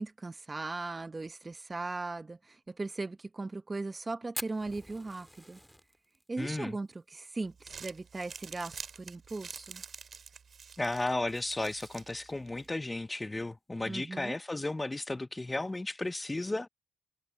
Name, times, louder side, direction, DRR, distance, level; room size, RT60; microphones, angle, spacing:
voice 1, 0.0-5.6 6.3-9.8 13.8-14.4, right 3 dB, 25° right, 0.9 m, -38 dB
Fire, 4.3-8.9 9.1-9.2 9.5-9.6 9.9-10.4 10.9-11.0 12.0-12.2, equal, ahead, 2.2 m, -45 dB
voice 2, 6.4-6.8 10.8-16.7, left 2 dB, 15° left, 0.5 m, -34 dB
Crumpling crinkling, 7.4-12.7, right 6 dB, 45° right, 2.2 m, -48 dB
cardioid pair, 90°, 0 cm